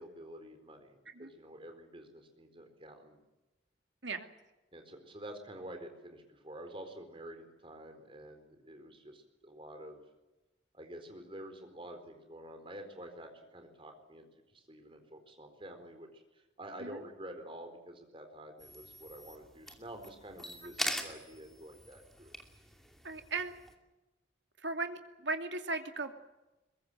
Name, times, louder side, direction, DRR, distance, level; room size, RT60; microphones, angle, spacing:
voice 1, 0.0-3.2 4.7-10.0 10.7-14.3 14.5-22.3, right 1 dB, 30° right, 6 dB, 4.3 m, -49 dB
sound 1, 18.6-23.7, equal, ahead, 2.6 m, -43 dB
voice 2, 23.0-23.6 24.6-26.1, right 3 dB, 70° right, 6 dB, 2.5 m, -37 dB
23.0 x 21.5 x 7.7 m, 1.1 s
head